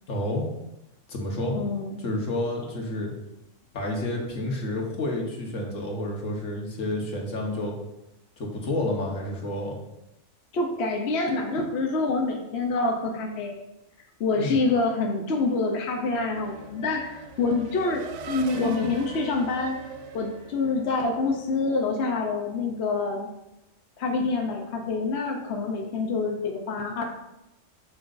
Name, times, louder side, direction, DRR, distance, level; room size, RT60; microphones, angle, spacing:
voice 1, 0.1-0.4 1.1-1.6 2.0-3.1 3.7-7.8 8.4-9.7 14.4-14.6, left 1 dB, 80° left, 0 dB, 1.7 m, -29 dB
voice 2, 1.5-2.0 10.5-13.6 14.2-19.8 20.1-23.3 24.0-27.0, left 3 dB, 60° left, 1 dB, 1.0 m, -26 dB
Race car auto racing / Accelerating revving vroom, 15.3-21.3, right 6 dB, 75° right, 0.9 m, -43 dB
sound 1, 15.5-22.1, right 1 dB, 20° right, 1.7 m, -47 dB
7.7 x 6.2 x 2.6 m, 0.90 s
omnidirectional pair, 1.3 m